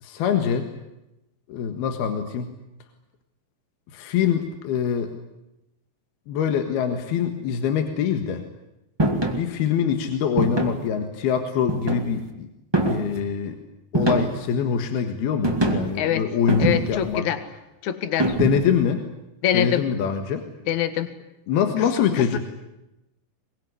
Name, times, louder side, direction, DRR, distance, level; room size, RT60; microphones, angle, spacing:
voice 1, 0.0-0.7 1.5-2.5 3.9-5.1 6.3-8.4 9.3-12.5 12.8-13.6 13.9-17.3 18.4-19.1 19.5-20.4 21.5-22.4, left 7 dB, 80° left, 6 dB, 3.5 m, -24 dB
sound 1, 9.0-9.4 10.4-10.9 11.7-12.2 12.7-13.2 13.9-14.5 15.4-16.0 16.5-17.1 18.2-18.8, right 2 dB, 10° right, 1.3 m, -24 dB
voice 2, 16.6-17.4 17.8-18.4 19.4-19.8 20.7-21.1 21.8-21.9 22.2-22.4, left 10 dB, 55° left, 11 dB, 2.7 m, -24 dB
22.5 x 22.5 x 9.8 m, 0.92 s
omnidirectional pair, 4.5 m